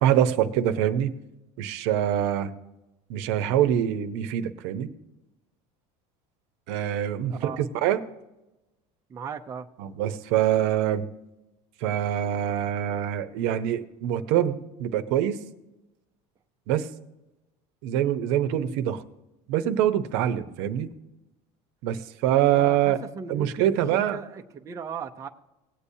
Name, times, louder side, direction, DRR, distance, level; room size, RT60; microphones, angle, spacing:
voice 1, 0.0-1.1 1.6-2.5 3.1-4.9 6.7-8.0 9.8-11.1 11.8-15.4 16.7-16.9 17.8-19.0 19.5-20.9 21.8-23.0 23.3-24.2, right 11 dB, 70° right, 10 dB, 0.9 m, -24 dB
voice 2, 7.3-7.6 9.1-9.7 22.4-25.3, right 6 dB, 20° right, 4 dB, 0.6 m, -37 dB
18.5 x 8.4 x 2.7 m, 0.98 s
cardioid pair, 155°, 15 cm